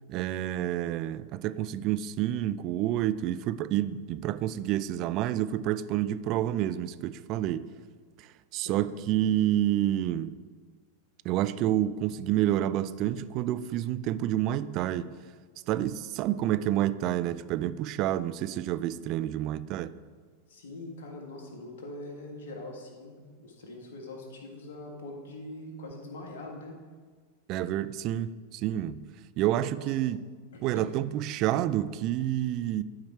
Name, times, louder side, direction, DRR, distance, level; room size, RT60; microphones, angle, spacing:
voice 1, 0.1-7.7 8.2-10.4 11.2-15.2 15.7-19.9 27.5-30.4 30.6-32.8, right 12 dB, 40° right, 0.3 m, -29 dB
voice 2, 20.5-26.7 29.7-29.9 30.5-30.9, left 2 dB, 60° left, 1.7 m, -43 dB
11.5 x 4.9 x 4.4 m
figure-of-eight pair, 90°, 0 cm